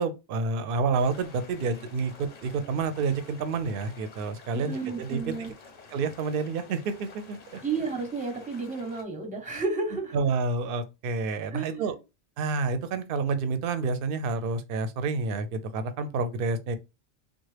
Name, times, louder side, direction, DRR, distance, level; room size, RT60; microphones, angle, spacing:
voice 1, 0.0-5.3 5.9-7.6 10.1-12.0 12.4-16.8, right 4 dB, 60° right, 0.7 m, -29 dB
sound 1, 0.9-9.0, left 4 dB, 45° left, 0.6 m, -50 dB
voice 2, 4.5-5.5 7.6-10.2 11.5-11.9, right 4 dB, 10° right, 0.7 m, -32 dB
3.6 x 2.1 x 3.2 m
omnidirectional pair, 1.1 m